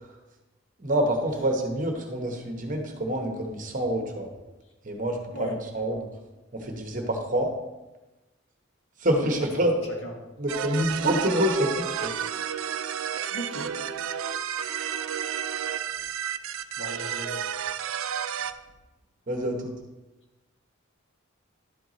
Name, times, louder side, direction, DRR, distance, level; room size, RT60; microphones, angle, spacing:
voice 1, 0.8-4.3 4.8-6.1 6.5-7.5 9.0-9.7 10.4-12.1 19.3-19.7, right 1 dB, 40° right, 3 dB, 1.0 m, -27 dB
voice 2, 9.2-10.1 13.3-13.8 16.8-17.4, equal, 60° left, -1 dB, 1.7 m, -37 dB
sound 1, 10.5-18.5, right 9 dB, 85° right, 0.4 m, -31 dB
11.5 x 4.6 x 4.0 m, 1.1 s
head